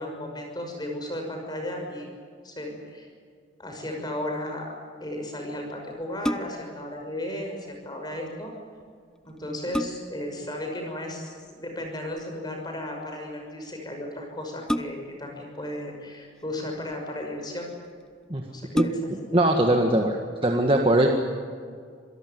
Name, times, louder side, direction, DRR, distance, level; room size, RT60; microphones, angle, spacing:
voice 1, 0.0-2.1 2.4-3.1 3.6-8.5 9.2-17.7 18.5-19.1, left 1 dB, 20° left, 2 dB, 6.2 m, -35 dB
sound 1, 6.2-6.8 8.8-8.9 9.4-10.3 11.8-12.2 14.7-15.3 16.2-16.9 17.7-17.8 18.1-18.2 18.7-19.4 19.8-19.9, equal, 5° left, 0.6 m, -31 dB
voice 2, 18.7-20.2 20.4-21.1, right 1 dB, 30° right, 1 dB, 1.8 m, -21 dB
27.0 x 18.0 x 9.5 m, 2.1 s
head